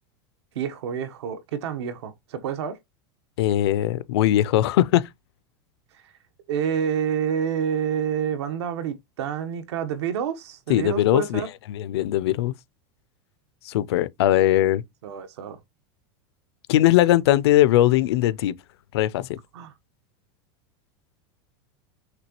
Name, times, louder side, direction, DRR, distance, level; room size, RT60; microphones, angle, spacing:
voice 1, 0.5-2.8 6.5-11.5 15.0-15.6 19.5-19.7, right 8 dB, 80° right, 1.1 m, -28 dB
voice 2, 3.4-5.1 10.7-11.4 11.7-12.5 13.6-14.8 16.7-18.5 18.9-19.4, left 13 dB, 70° left, 0.4 m, -20 dB
5.9 x 2.9 x 2.9 m
supercardioid pair, 180°, 14 cm